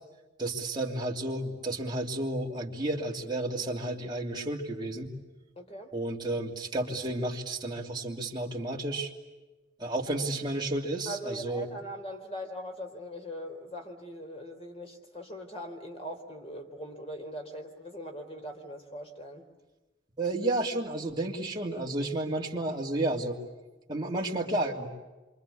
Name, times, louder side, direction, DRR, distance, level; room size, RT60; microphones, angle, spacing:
voice 1, 0.4-5.1 5.9-9.1 9.8-11.7 20.2-23.4 23.9-24.9, right 2 dB, 25° right, -1 dB, 2.8 m, -32 dB
voice 2, 5.6-5.9 11.1-19.5, equal, 35° left, 4 dB, 3.8 m, -41 dB
27.5 x 25.5 x 8.4 m, 1.1 s
head